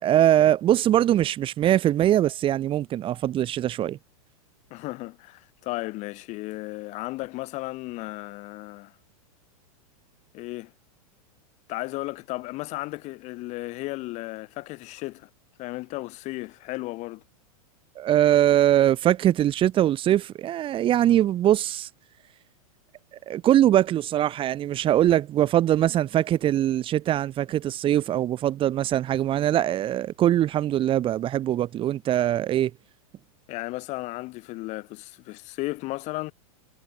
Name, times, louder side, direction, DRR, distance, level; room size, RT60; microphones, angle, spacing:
voice 1, 0.0-4.0 17.9-21.9 23.3-32.7, right 12 dB, 25° right, 5.1 m, -22 dB
voice 2, 4.7-8.9 10.3-10.7 11.7-15.3 15.6-17.2 33.5-36.3, left 20 dB, 40° left, 4.7 m, -34 dB
supercardioid pair, 145°, 19 cm